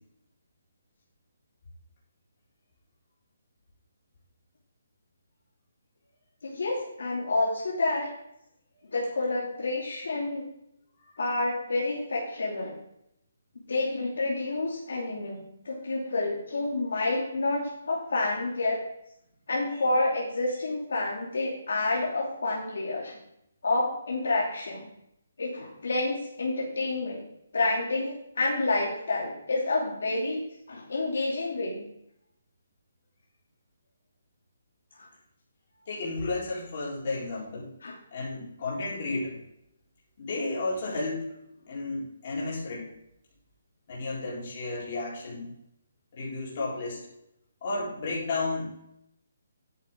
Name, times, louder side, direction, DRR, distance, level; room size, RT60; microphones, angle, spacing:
voice 1, 6.4-8.1 8.9-10.5 11.2-12.8 13.7-18.8 19.5-23.2 23.6-24.9 25.4-27.2 27.5-30.4 30.7-31.9 37.8-37.9 46.6-46.7, left 2 dB, 65° left, -4 dB, 2.7 m, -29 dB
voice 2, 35.9-37.7 38.1-39.4 40.2-41.2 41.7-42.9 43.9-45.5 46.1-47.0 47.6-48.8, left 3 dB, 30° left, -6 dB, 4.0 m, -32 dB
11.0 x 8.4 x 3.7 m, 0.77 s
hypercardioid pair, 180°, 0 cm